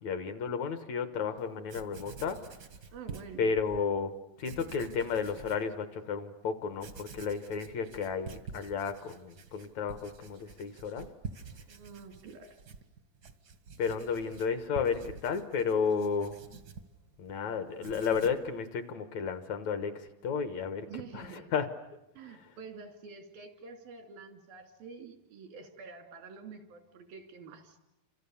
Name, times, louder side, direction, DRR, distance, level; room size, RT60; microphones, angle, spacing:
voice 1, 0.0-2.4 3.4-4.1 4.4-11.1 13.8-16.3 17.2-20.9 21.1-21.7 22.3-22.5, left 6 dB, 65° left, 10 dB, 2.2 m, -32 dB
Writing, 1.4-1.5 1.7-3.8 4.4-5.7 6.1-6.2 6.7-17.4 17.7-18.5, right 5 dB, 55° right, 1.0 m, -48 dB
voice 2, 2.9-3.5 11.7-12.6 20.9-21.5 22.2-27.8, right 5 dB, 90° right, 6 dB, 4.4 m, -47 dB
30.0 x 27.0 x 7.1 m, 0.92 s
omnidirectional pair, 4.1 m